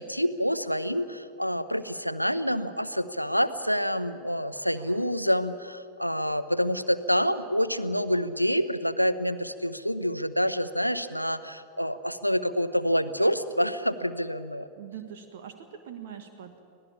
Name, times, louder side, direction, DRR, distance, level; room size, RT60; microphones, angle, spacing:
voice 1, 0.0-14.7, equal, 90° left, 12 dB, 0.8 m, -27 dB
voice 2, 4.7-5.1 14.7-16.6, right 9 dB, 55° right, 8 dB, 1.4 m, -43 dB
25.0 x 17.5 x 8.6 m, 2.5 s
figure-of-eight pair, 90°, 0 cm